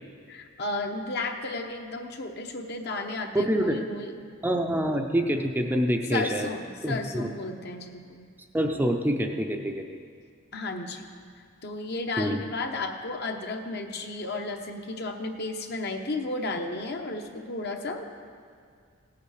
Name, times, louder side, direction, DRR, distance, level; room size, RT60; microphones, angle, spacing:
voice 1, 0.3-4.2 6.1-8.3 10.5-11.0 11.6-18.0, left 2 dB, 50° left, 4 dB, 0.9 m, -33 dB
voice 2, 3.3-3.8 4.4-6.5 6.8-7.3 8.5-9.8 12.2-12.4, equal, 10° right, 3 dB, 0.5 m, -26 dB
17.5 x 8.4 x 4.9 m, 2.2 s
head